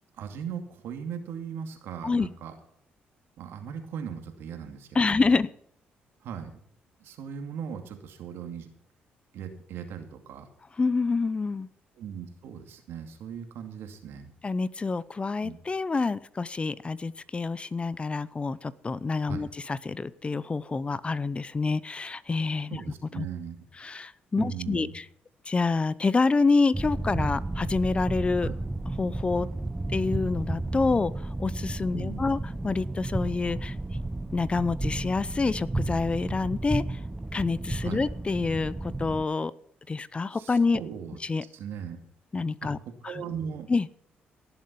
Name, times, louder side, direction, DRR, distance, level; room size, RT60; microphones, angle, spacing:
voice 1, 0.2-2.5 3.4-5.3 6.2-6.6 7.0-8.7 9.3-10.5 12.0-14.3 15.4-15.6 19.3-19.5 22.7-23.6 24.3-24.9 28.4-28.5 31.9-32.3 37.8-38.0 40.3-41.2 41.5-42.0 42.6-42.7 43.0-43.7, right 7 dB, 80° right, 6 dB, 2.5 m, -38 dB
voice 2, 4.9-5.5 10.8-11.7 14.4-22.8 23.2-23.3 23.8-25.0 25.5-28.5 29.0-29.5 29.9-33.7 34.3-37.0 37.3-39.5 39.9-40.8 41.2-41.4 42.3-42.8 43.0-43.2 43.7-43.9, left 4 dB, 30° left, 19 dB, 0.7 m, -27 dB
sound 1, 26.7-39.2, right 2 dB, 10° right, 0.7 m, -32 dB
17.5 x 7.6 x 5.4 m, 0.67 s
cardioid pair, 75°, 4 cm